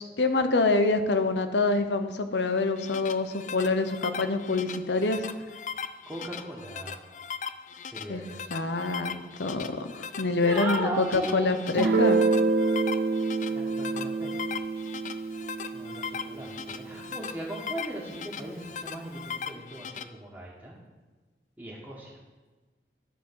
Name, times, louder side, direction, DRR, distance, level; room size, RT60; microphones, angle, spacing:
voice 1, 0.0-5.2 8.1-8.2 8.5-12.2, left 3 dB, 90° left, 9 dB, 0.8 m, -26 dB
sound 1, 2.6-20.0, left 6 dB, 45° left, 0.4 m, -39 dB
voice 2, 6.1-7.0 7.9-8.6 10.4-12.0 13.5-14.6 15.7-20.8 21.6-22.2, right 1 dB, 10° right, -8 dB, 1.6 m, -37 dB
Guitar, 11.8-17.3, right 3 dB, 60° right, 0.5 m, -27 dB
11.0 x 4.7 x 7.5 m, 1.2 s
head